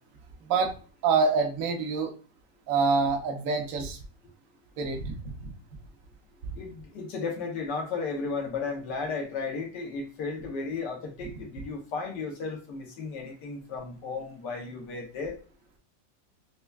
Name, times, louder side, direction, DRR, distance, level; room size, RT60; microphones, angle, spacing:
voice 1, 0.4-0.7 1.0-2.1 2.7-4.0 4.8-5.2, right 4 dB, 60° right, 3 dB, 0.9 m, -26 dB
voice 2, 6.5-15.4, left 4 dB, 70° left, 2 dB, 1.4 m, -34 dB
5.4 x 2.2 x 2.3 m, 0.37 s
omnidirectional pair, 2.0 m